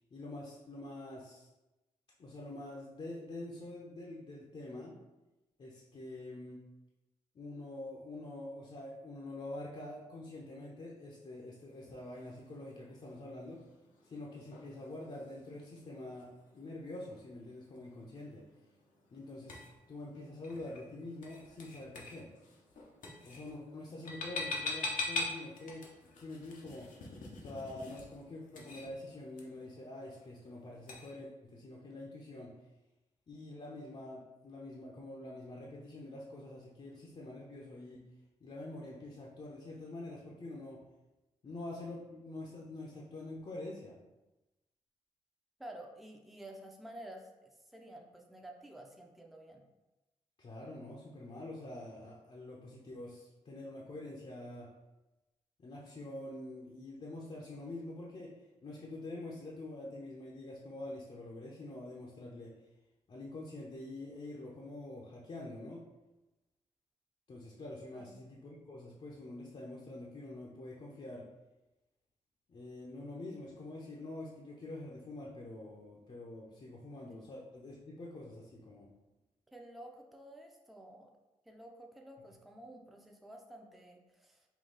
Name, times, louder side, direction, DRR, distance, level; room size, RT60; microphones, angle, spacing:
voice 1, 0.1-1.5 2.2-5.0 5.6-6.6 7.3-13.6 14.0-18.5 19.1-19.6 19.9-22.3 23.2-26.9 27.4-32.5 33.3-38.0 38.4-40.8 41.4-44.0 50.4-54.7 55.6-58.3 58.6-62.5 63.1-65.9 67.3-71.3 72.5-78.9, left 2 dB, 45° left, -3 dB, 0.7 m, -46 dB
sound 1, 11.7-31.1, left 2 dB, 75° left, 0.8 m, -45 dB
voice 2, 45.6-49.6 67.9-68.2 79.5-81.1 81.5-84.5, right 1 dB, ahead, 1 dB, 0.6 m, -51 dB
3.8 x 2.3 x 3.9 m, 1.0 s
supercardioid pair, 55°, 13 cm